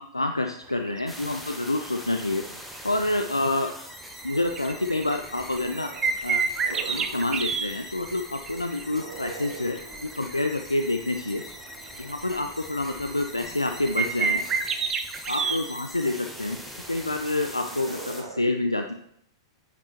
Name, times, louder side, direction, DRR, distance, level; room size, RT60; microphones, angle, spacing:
voice 1, 0.0-2.5 2.8-3.7 4.2-5.9 6.2-6.4 6.7-11.4 12.0-14.4 15.3-16.6 16.9-18.9, left 2 dB, 85° left, 5 dB, 0.4 m, -28 dB
sound 1, 0.7-1.0 1.9-2.0 2.5-2.8 3.0-3.2 3.4-3.7 4.1-7.7 8.0-8.9 9.4-10.8 11.2-11.3 11.5-12.7 13.2-13.3 13.5-15.6 17.0-17.1 17.8-17.9, right 5 dB, 20° right, 0.6 m, -29 dB
sound 2, 1.1-18.2, equal, ahead, 0.9 m, -43 dB
sound 3, 4.5-7.4 8.7-10.3 11.2-12.2 12.6-16.1 17.4-18.4, right 3 dB, 60° right, 1.2 m, -44 dB
8.5 x 5.0 x 3.0 m, 0.72 s
figure-of-eight pair, 100°, 2 cm